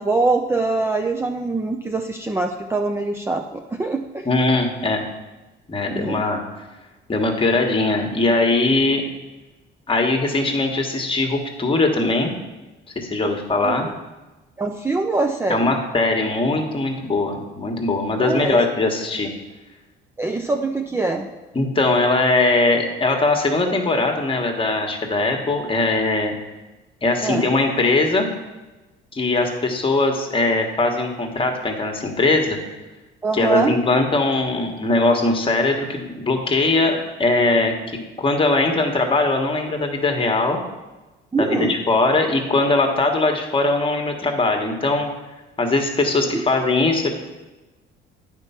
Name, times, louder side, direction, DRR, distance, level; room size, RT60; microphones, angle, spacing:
voice 1, 0.0-4.2 5.9-6.2 13.2-13.3 13.6-13.9 14.6-15.7 18.2-18.6 20.2-21.3 27.2-27.5 33.2-33.7 41.3-41.8 46.3-46.4, right 3 dB, 10° right, 3 dB, 0.5 m, -23 dB
voice 2, 4.2-5.0 5.7-6.4 7.1-9.0 9.9-12.3 12.9-13.9 15.5-19.3 21.5-26.3 27.0-28.3 29.1-32.6 33.3-37.7 38.2-40.6 41.4-45.1 45.6-47.2, left 2 dB, 25° left, 3 dB, 1.4 m, -20 dB
8.9 x 4.5 x 5.7 m, 1.1 s
cardioid pair, 100°, 21 cm